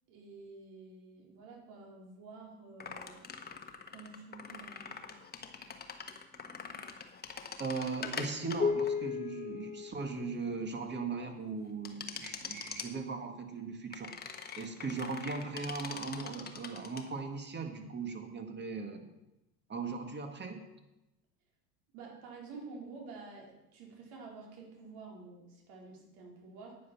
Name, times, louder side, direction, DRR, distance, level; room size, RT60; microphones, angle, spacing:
voice 1, 0.1-3.2 3.9-5.1 21.9-26.8, right 4 dB, 60° right, -1 dB, 4.4 m, -50 dB
sound 1, 2.8-10.6 11.8-12.9 13.9-17.0, left 6 dB, 20° left, 1.3 m, -39 dB
voice 2, 7.6-14.1 14.6-19.0 19.7-20.6, right 4 dB, 20° right, 6 dB, 2.0 m, -38 dB
9.6 x 9.6 x 6.1 m, 0.93 s
hypercardioid pair, 100°, 46 cm